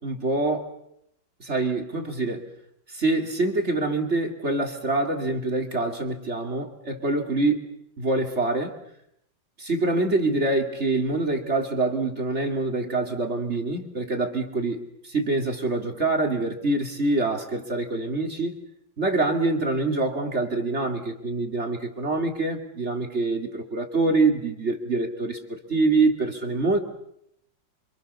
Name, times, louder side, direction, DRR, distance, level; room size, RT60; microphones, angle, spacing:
voice 1, 0.0-0.7 1.4-2.4 2.9-7.6 8.0-8.7 9.6-18.5 19.0-26.8, right 2 dB, 35° right, 4 dB, 3.1 m, -25 dB
29.0 x 26.0 x 7.0 m, 0.77 s
omnidirectional pair, 2.1 m